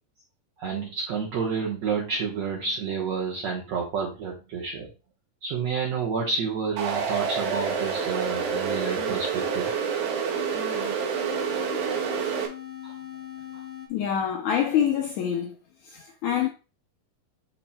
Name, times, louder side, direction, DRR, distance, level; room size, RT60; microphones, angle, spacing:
voice 1, 0.6-4.9 5.4-9.7 12.2-12.3 12.8-13.0 13.5-13.6, right 5 dB, 65° right, 1.8 m, -29 dB
sound 1, 6.8-12.5, right 6 dB, 90° right, 3.2 m, -28 dB
sound 2, 6.9-10.0 10.3-13.9, left 8 dB, 60° left, 1.6 m, -40 dB
voice 2, 13.9-15.6 15.8-16.5, left 9 dB, 85° left, 1.7 m, -26 dB
10.0 x 4.3 x 2.2 m
omnidirectional pair, 4.2 m